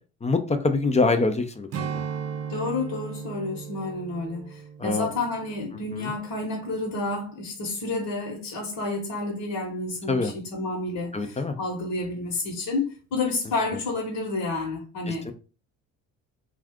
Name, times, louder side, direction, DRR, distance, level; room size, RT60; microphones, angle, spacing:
voice 1, 0.2-2.1 4.8-5.1 5.9-6.1 10.1-10.3 11.1-11.6 15.1-15.3, left 3 dB, 15° left, 0.5 m, -25 dB
Strum, 1.7-6.4 6.8-7.0, right 7 dB, 40° right, 0.5 m, -37 dB
voice 2, 2.5-15.2, left 2 dB, 60° left, 1.1 m, -30 dB
2.4 x 2.4 x 3.6 m
hypercardioid pair, 60°, 39 cm